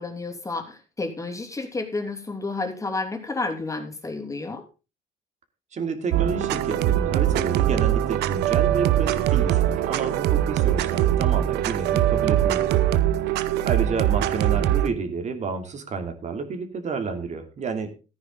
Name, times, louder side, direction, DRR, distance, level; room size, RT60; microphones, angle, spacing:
voice 1, 0.0-4.6, left 3 dB, 20° left, 4 dB, 2.9 m, -31 dB
voice 2, 5.7-12.9 13.3-17.9, right 5 dB, 45° right, 6 dB, 2.8 m, -30 dB
sound 1, 6.1-14.9, right 12 dB, 85° right, 0.8 m, -22 dB
14.0 x 9.7 x 3.8 m, 0.31 s
cardioid pair, 110°, 17 cm